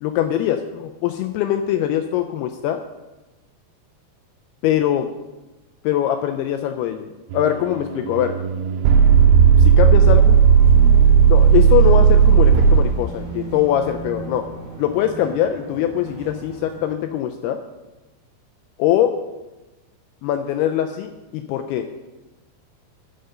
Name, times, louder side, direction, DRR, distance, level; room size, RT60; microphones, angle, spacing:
voice 1, 0.0-2.8 4.6-5.1 5.8-8.3 9.6-10.4 11.3-14.4 14.8-17.6 18.8-19.1 20.2-21.8, left 11 dB, 90° left, 6 dB, 2.2 m, -22 dB
sound 1, 7.3-12.8, right 7 dB, 80° right, 2.3 m, -13 dB
sound 2, 10.0-16.9, right 4 dB, 30° right, 2.3 m, -36 dB
11.5 x 6.7 x 6.7 m, 1.1 s
omnidirectional pair, 5.2 m